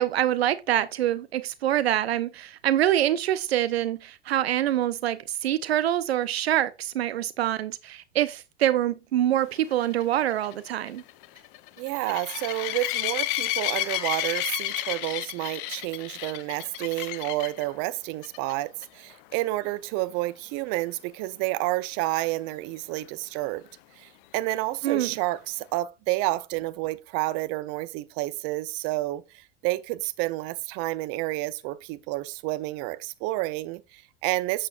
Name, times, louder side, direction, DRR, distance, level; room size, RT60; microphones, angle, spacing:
voice 1, 0.0-11.0 24.8-25.1, right 12 dB, 80° right, 0.6 m, -25 dB
sound 1, 9.7-17.6 18.2-18.5 18.8-18.9 19.3-19.4 23.0-23.1, left 15 dB, 55° left, 0.7 m, -31 dB
voice 2, 11.8-23.6 24.0-34.7, right 18 dB, 50° right, 0.7 m, -30 dB
8.6 x 7.3 x 2.4 m
hypercardioid pair, 95°, 31 cm